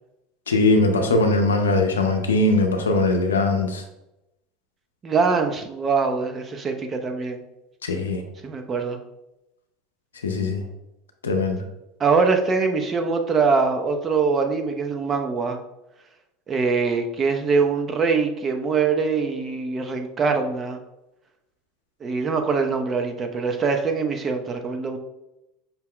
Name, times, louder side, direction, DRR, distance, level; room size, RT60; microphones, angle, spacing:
voice 1, 0.5-3.8 7.8-8.2 10.2-10.6 11.2-11.6, left 2 dB, 90° left, 5 dB, 0.6 m, -20 dB
voice 2, 5.0-7.4 8.4-9.0 12.0-15.6 16.5-20.8 22.0-25.0, right 4 dB, 35° right, 5 dB, 0.6 m, -23 dB
5.7 x 2.2 x 3.7 m, 0.91 s
hypercardioid pair, 80°, 0 cm